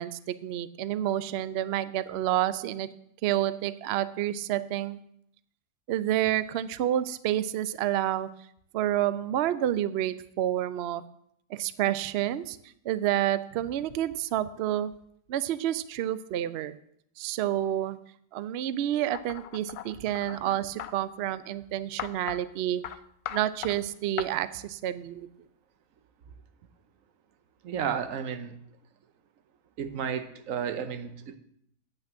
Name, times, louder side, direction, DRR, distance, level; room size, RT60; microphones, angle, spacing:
voice 1, 0.0-2.9 3.2-5.0 5.9-8.3 8.7-11.0 11.5-12.6 12.8-14.9 15.3-16.8 17.2-18.0 18.3-22.8 23.3-25.3, right 12 dB, 85° right, 15 dB, 0.5 m, -29 dB
sound 1, 19.1-20.9 22.0-22.4 22.8-23.0 23.3-23.8 24.2-24.3, left 11 dB, 80° left, 1.1 m, -38 dB
voice 2, 27.6-28.6 29.8-31.4, right 7 dB, 60° right, 10 dB, 1.1 m, -32 dB
9.0 x 5.9 x 7.5 m, 0.70 s
omnidirectional pair, 1.7 m